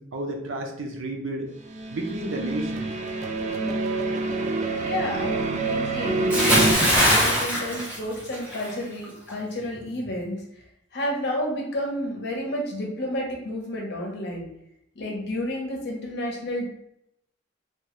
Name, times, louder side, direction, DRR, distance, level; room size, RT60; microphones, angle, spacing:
voice 1, 0.0-1.5 1.9-2.9, right 1 dB, 75° right, 2 dB, 0.6 m, -31 dB
sound 1, 1.7-6.7, right 3 dB, 35° right, 0.3 m, -27 dB
voice 2, 4.8-10.6 10.9-14.5 14.9-16.7, left 1 dB, 60° left, 0 dB, 0.8 m, -31 dB
Bathtub (filling or washing) / Splash splatter, 6.3-8.7 9.0-9.3, equal, 5° right, 0.8 m, -21 dB
3.2 x 2.3 x 3.0 m, 0.78 s
head